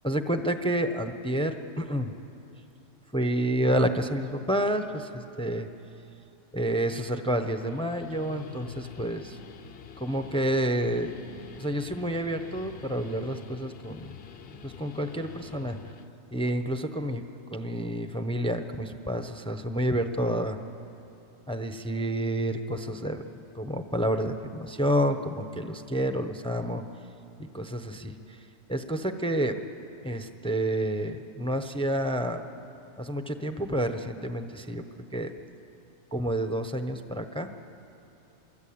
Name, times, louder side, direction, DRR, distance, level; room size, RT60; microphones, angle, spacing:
voice 1, 0.0-2.1 3.1-5.7 6.5-9.4 10.0-11.1 11.6-14.1 14.6-15.8 16.3-17.2 17.5-20.6 21.5-23.2 23.5-26.8 27.4-28.4 28.7-29.6 30.0-32.5 33.0-34.8 35.1-35.3 36.1-37.5, right 1 dB, 5° left, 7 dB, 0.8 m, -29 dB
Guitar, 7.4-16.1, left 6 dB, 60° left, 1.0 m, -47 dB
24.5 x 22.5 x 8.7 m, 2.9 s
omnidirectional pair, 1.2 m